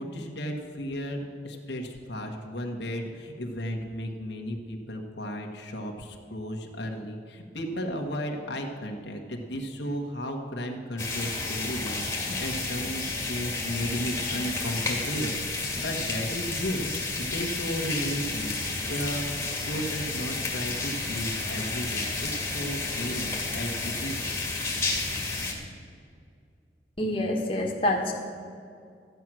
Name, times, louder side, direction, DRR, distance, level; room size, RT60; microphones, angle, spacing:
voice 1, 0.0-24.3, equal, 80° left, 1 dB, 1.4 m, -34 dB
sound 1, 11.0-25.5, left 3 dB, 15° left, 1.9 m, -31 dB
voice 2, 27.0-28.1, left 1 dB, 30° left, 0 dB, 1.6 m, -26 dB
13.5 x 9.3 x 6.1 m, 2.3 s
head